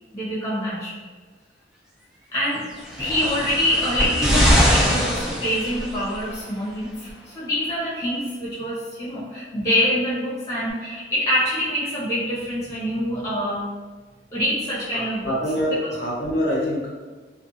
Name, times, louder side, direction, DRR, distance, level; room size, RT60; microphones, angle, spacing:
voice 1, 0.1-1.0 2.3-2.7 3.0-13.7 14.3-15.3, equal, 20° left, -8 dB, 0.8 m, -25 dB
sound 1, 2.8-6.2 7.1-7.2, equal, 5° right, 0.4 m, -21 dB
voice 2, 14.9-16.9, equal, 60° left, -5 dB, 0.7 m, -25 dB
2.5 x 2.3 x 2.6 m, 1.4 s
head